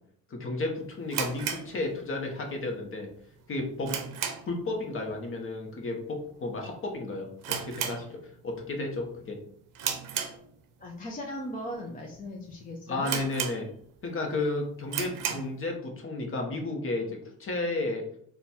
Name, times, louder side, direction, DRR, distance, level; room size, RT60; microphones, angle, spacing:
voice 1, 0.3-3.1 3.5-4.0 4.5-9.4 12.9-13.7 14.0-18.0, left 2 dB, 40° left, 2 dB, 1.0 m, -33 dB
sound 1, 1.1-2.4 2.7-2.8 3.3-4.7 5.0-5.3 5.6-5.7 6.3-6.6 6.9-7.0 7.4-8.6 8.9-9.2 9.8-10.9 11.5-11.6 12.1-12.2 12.5-12.6 13.0-14.0 14.4-14.5 14.8-15.6, right 8 dB, 75° right, 0.6 m, -34 dB
voice 2, 10.8-13.2, equal, 25° left, -1 dB, 0.6 m, -38 dB
4.0 x 2.3 x 4.2 m, 0.63 s
cardioid pair, 110°, 33 cm